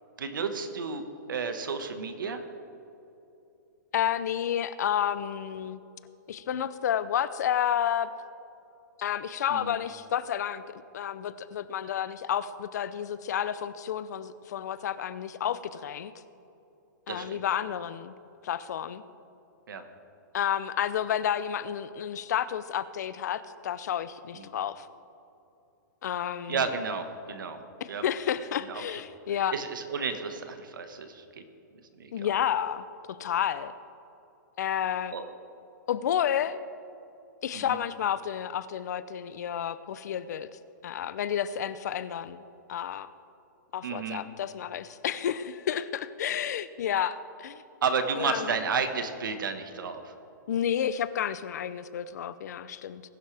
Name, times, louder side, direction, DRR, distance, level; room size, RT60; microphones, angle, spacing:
voice 1, 0.2-2.4 9.5-9.7 17.1-17.4 19.7-19.8 24.3-24.5 26.5-27.6 27.9-28.0 28.7-29.0 29.5-31.4 32.0-32.3 35.1-35.2 37.5-37.8 43.8-44.2 47.8-50.1, right 5 dB, 85° right, 7 dB, 1.5 m, -32 dB
voice 2, 3.9-5.8 6.3-8.1 9.0-16.1 17.1-18.1 18.4-19.0 20.3-24.9 26.0-26.6 27.8-29.5 32.1-33.7 34.6-35.1 35.9-36.6 37.4-42.4 42.7-43.1 43.7-47.6 48.2-48.5 50.5-53.0, left 9 dB, 55° left, 15 dB, 0.6 m, -31 dB
20.5 x 11.0 x 3.4 m, 2.8 s
hypercardioid pair, 165°, 11 cm